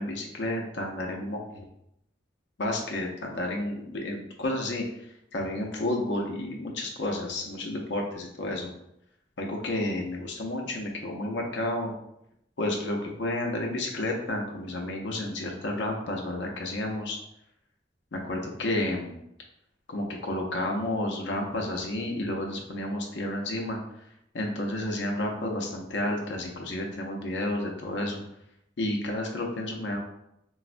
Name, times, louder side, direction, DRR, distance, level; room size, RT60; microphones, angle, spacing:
voice 1, 0.0-1.6 2.6-4.8 5.3-8.7 9.4-11.9 12.6-17.2 18.1-19.2 19.9-23.8 24.3-28.2 28.8-30.0, left 1 dB, 85° left, 0 dB, 0.5 m, -31 dB
3.8 x 2.1 x 2.5 m, 0.79 s
head